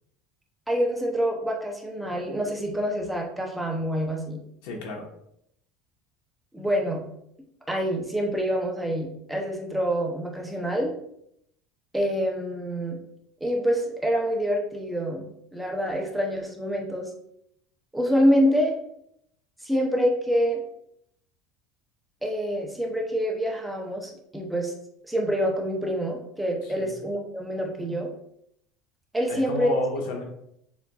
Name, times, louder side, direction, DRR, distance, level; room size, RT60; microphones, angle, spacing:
voice 1, 0.7-4.4 6.5-7.0 7.7-10.9 11.9-13.0 13.4-15.2 15.5-17.1 17.9-18.7 19.6-20.6 22.2-24.7 25.0-28.1 29.1-29.7, equal, 5° right, 0 dB, 0.6 m, -26 dB
voice 2, 4.6-5.1 26.8-27.0 29.3-30.2, left 2 dB, 75° left, 1 dB, 1.0 m, -31 dB
7.0 x 2.5 x 2.3 m, 0.74 s
cardioid pair, 150°, 0 cm